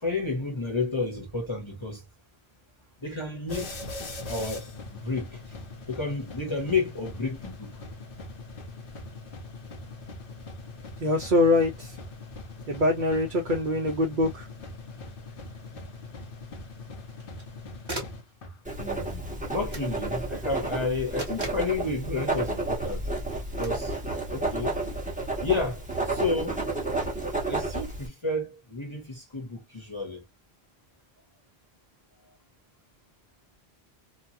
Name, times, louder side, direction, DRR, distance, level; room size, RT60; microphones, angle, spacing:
voice 1, 0.0-2.0 3.0-3.8 4.3-5.5 5.9-7.7 18.8-23.1 23.6-23.9 24.3-24.8 25.4-26.6 27.5-30.2, left 3 dB, 30° left, 1.1 m, -31 dB
sound 1, 3.5-18.8, left 2 dB, 60° left, 1.0 m, -41 dB
voice 2, 11.0-11.9 12.7-14.5, left 2 dB, 55° right, 0.9 m, -24 dB
sound 2, 14.6-14.7 17.1-17.5 17.9-18.3 19.7-19.9 21.2-21.7 23.6-23.8, right 1 dB, 25° right, 1.5 m, -38 dB
Writing, 18.6-28.1, right 2 dB, 10° right, 1.1 m, -31 dB
3.0 x 2.3 x 2.5 m
omnidirectional pair, 1.0 m